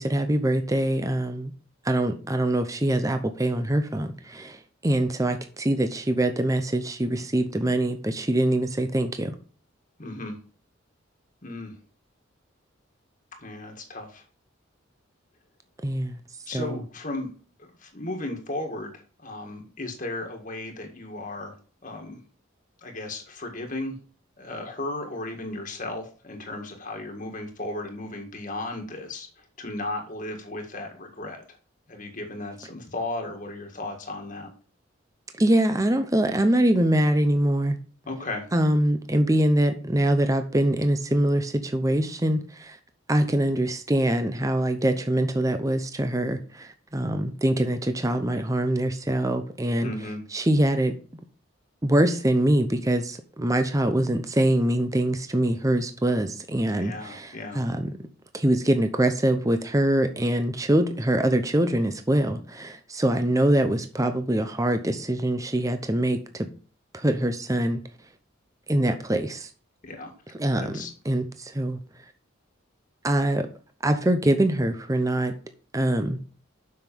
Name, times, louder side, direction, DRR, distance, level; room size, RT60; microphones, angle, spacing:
voice 1, 0.0-1.5 1.8-9.3 15.8-16.2 16.5-16.8 35.4-37.8 38.5-42.8 43.1-49.9 50.3-50.9 51.8-57.9 58.3-66.5 66.9-67.8 68.7-69.5 70.4-71.8 73.0-73.5 73.8-75.3 75.7-76.2, right 1 dB, 15° right, 0.7 m, -24 dB
voice 2, 10.0-10.4 11.4-11.7 13.4-14.2 16.5-17.3 17.6-21.5 21.8-22.2 22.8-23.9 24.4-31.4 31.9-34.5 38.0-38.4 49.8-50.2 56.8-57.6 69.8-70.1 70.6-70.9, left 2 dB, 40° left, 1.8 m, -35 dB
7.5 x 6.0 x 5.3 m
head